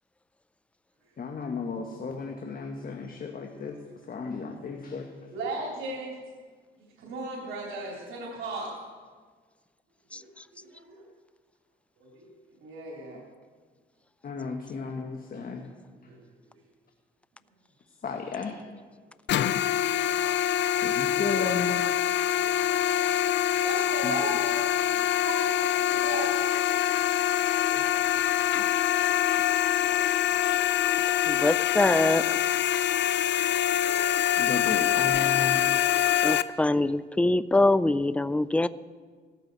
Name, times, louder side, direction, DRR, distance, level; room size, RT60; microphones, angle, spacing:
voice 1, 1.2-3.8 4.1-5.1 13.1-13.2 14.2-15.7 18.0-18.6 20.8-21.7 24.0-24.1 34.4-35.7, left 5 dB, 45° left, 3 dB, 1.4 m, -34 dB
voice 2, 5.3-6.2 6.8-8.7 10.1-11.0 12.0-12.3 12.6-13.2 16.1-16.2 19.9-20.4 23.4-25.0 25.2-26.3 27.7-27.8 29.8-29.9 30.2-30.6, right 2 dB, 80° right, -3 dB, 3.4 m, -37 dB
sound 1, 19.3-36.4, left 11 dB, 65° left, 0.6 m, -25 dB
voice 3, 31.3-32.2 36.2-38.7, left 2 dB, 5° left, 16 dB, 0.4 m, -24 dB
17.0 x 14.0 x 4.1 m, 1.5 s
cardioid pair, 90°, 20 cm